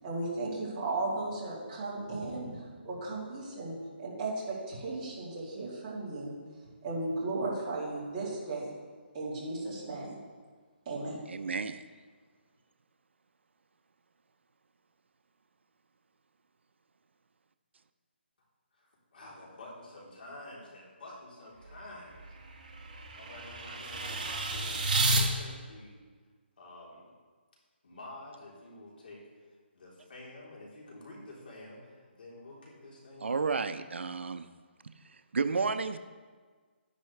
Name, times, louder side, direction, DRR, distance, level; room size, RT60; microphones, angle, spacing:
voice 1, 0.0-6.4 6.8-8.7 9.1-10.2 10.8-11.2, right 2 dB, 20° right, -7 dB, 2.9 m, -35 dB
voice 2, 11.3-11.8 33.2-34.4 35.3-36.0, right 4 dB, 75° right, 10 dB, 0.6 m, -31 dB
voice 3, 19.1-22.2 23.2-26.0 26.6-27.1 27.8-29.2 29.7-33.4, left 2 dB, 55° left, -4 dB, 3.6 m, -48 dB
sound 1, 21.6-25.2, right 2 dB, 40° right, 2.2 m, -32 dB
11.5 x 10.5 x 3.3 m, 1.5 s
hypercardioid pair, 175°, 6 cm